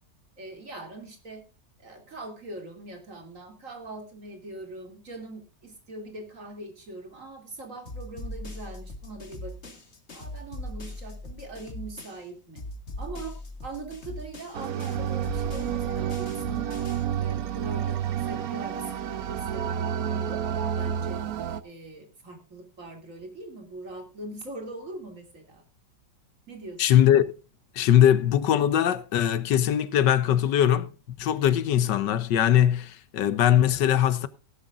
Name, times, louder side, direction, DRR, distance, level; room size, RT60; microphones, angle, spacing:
voice 1, 0.4-1.4 1.8-9.7 10.1-12.6 13.0-13.3 13.6-16.8 17.2-21.2 21.6-25.6 26.5-26.8, right 2 dB, 45° right, 3.1 m, -42 dB
sound 1, 7.9-12.3 12.6-17.2, left 1 dB, 40° left, 2.1 m, -40 dB
sound 2, 14.5-21.6, right 9 dB, 65° right, 1.2 m, -30 dB
voice 2, 26.8-27.2 27.7-30.9 31.2-34.3, left 10 dB, 80° left, 1.5 m, -21 dB
18.0 x 11.0 x 2.5 m
omnidirectional pair, 1.9 m